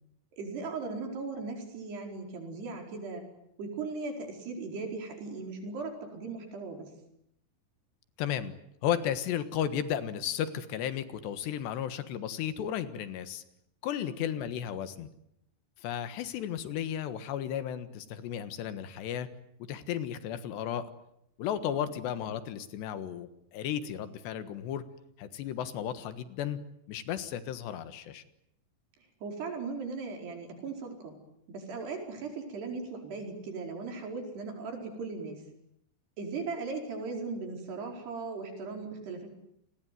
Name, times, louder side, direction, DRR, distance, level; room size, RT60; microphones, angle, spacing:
voice 1, 0.4-3.2 3.6-6.9 14.0-14.3 21.6-21.9 29.2-31.2 31.5-35.4 36.2-39.3, right 4 dB, 75° right, 3 dB, 6.7 m, -38 dB
voice 2, 8.2-8.5 8.8-13.4 13.8-15.1 15.8-19.3 19.6-20.9 21.4-24.8 25.2-26.6 26.9-28.2, left 9 dB, 85° left, 12 dB, 3.7 m, -34 dB
30.0 x 20.0 x 9.3 m, 0.78 s
omnidirectional pair, 4.8 m